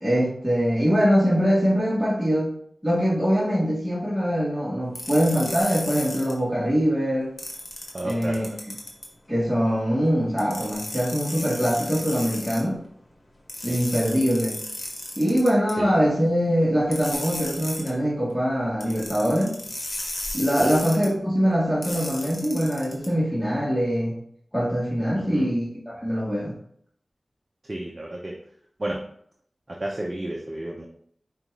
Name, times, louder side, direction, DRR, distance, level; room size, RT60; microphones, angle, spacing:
voice 1, 0.0-2.5 2.8-7.3 8.0-8.4 9.3-12.8 13.6-14.6 15.2-19.5 20.3-24.1 24.5-26.5, equal, ahead, -8 dB, 1.4 m, -23 dB
sound 1, 4.9-6.3 7.4-9.1 10.4-12.6 13.5-15.7 16.9-17.9 18.8-21.1 21.8-23.1, left 1 dB, 65° left, 1.1 m, -34 dB
voice 2, 7.9-8.6 13.7-13.8 15.8-15.9 20.6-20.8 25.1-25.5 27.7-28.4 28.8-29.0 29.7-30.9, right 1 dB, 40° right, -1 dB, 0.6 m, -32 dB
5.1 x 2.4 x 3.1 m, 0.65 s
cardioid pair, 45°, 0 cm